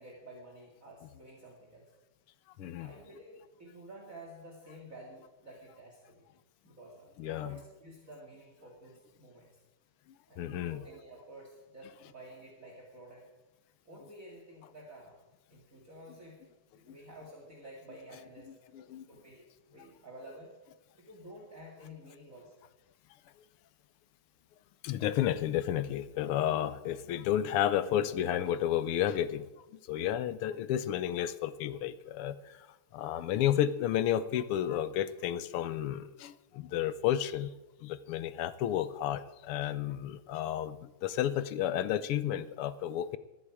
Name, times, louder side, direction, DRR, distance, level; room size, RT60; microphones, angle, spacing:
voice 1, 0.0-1.9 2.8-6.3 6.6-9.5 10.3-13.2 13.9-15.2 15.5-16.5 16.7-20.5 21.0-22.6, right 1 dB, 40° right, -2 dB, 2.6 m, -51 dB
voice 2, 2.6-2.9 7.2-7.6 10.4-10.8 18.7-19.0 24.8-29.5 29.9-32.6 32.9-37.5 37.8-43.2, left 11 dB, 90° left, 14 dB, 1.7 m, -31 dB
19.5 x 13.5 x 4.9 m, 1.1 s
omnidirectional pair, 2.4 m